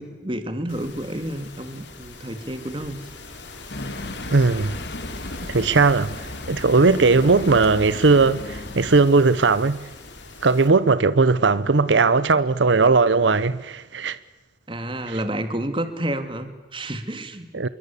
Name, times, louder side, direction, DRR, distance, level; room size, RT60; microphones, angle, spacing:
voice 1, 0.0-3.0 14.7-17.5, right 1 dB, 30° right, 2.2 m, -30 dB
sound 1, 0.7-10.7, left 3 dB, 85° left, 4.1 m, -41 dB
sound 2, 3.7-9.0, left 1 dB, 65° left, 2.2 m, -35 dB
voice 2, 4.3-4.7 5.5-6.1 6.5-9.9 10.4-14.2 15.1-15.2 17.5-17.7, right 4 dB, 90° right, 0.8 m, -18 dB
27.0 x 22.5 x 8.5 m
head